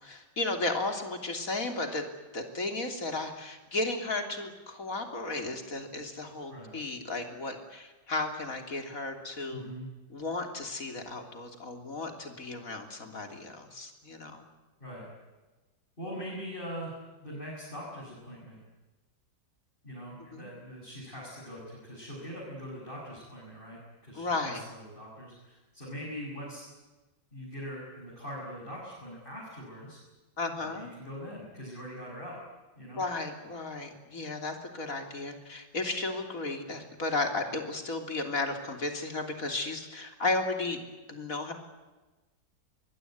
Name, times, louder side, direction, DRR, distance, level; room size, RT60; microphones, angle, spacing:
voice 1, 0.0-2.0 2.3-9.6 10.1-14.4 20.3-20.5 24.1-24.6 30.4-30.9 33.0-40.8 41.1-41.5, left 2 dB, 45° left, 5 dB, 3.5 m, -34 dB
voice 2, 9.5-9.9 14.8-15.1 16.0-16.9 17.2-18.6 19.8-26.6 27.3-30.0 30.6-32.4 32.8-33.0, equal, 25° left, -5 dB, 8.3 m, -42 dB
24.0 x 21.0 x 9.6 m, 1.2 s
omnidirectional pair, 2.0 m